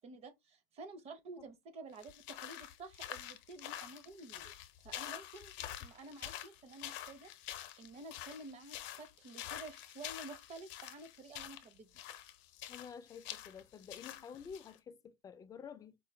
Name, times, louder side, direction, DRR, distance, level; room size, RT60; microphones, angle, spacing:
voice 1, 0.0-4.5 4.8-5.5 5.8-7.3 7.8-11.9, right 3 dB, 30° right, 0.6 m, -51 dB
sound 1, 1.9-14.7, left 12 dB, 75° left, 0.6 m, -47 dB
voice 2, 12.7-16.0, left 7 dB, 20° left, 0.3 m, -50 dB
4.6 x 2.2 x 3.2 m
cardioid pair, 175°, 20 cm